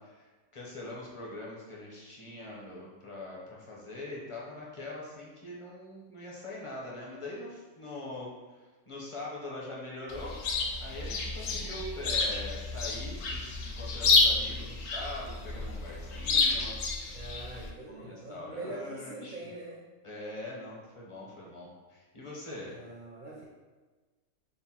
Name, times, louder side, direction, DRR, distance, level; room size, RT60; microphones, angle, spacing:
voice 1, 0.0-10.4 10.8-17.2 17.9-19.5 20.0-22.8, left 2 dB, 30° left, -5 dB, 0.6 m, -43 dB
Chirp tweet, 10.1-17.7, left 3 dB, 65° left, 0.7 m, -29 dB
voice 2, 17.0-19.8 22.7-23.4, right 2 dB, 60° right, -5 dB, 0.5 m, -44 dB
3.7 x 2.1 x 4.2 m, 1.3 s
omnidirectional pair, 1.5 m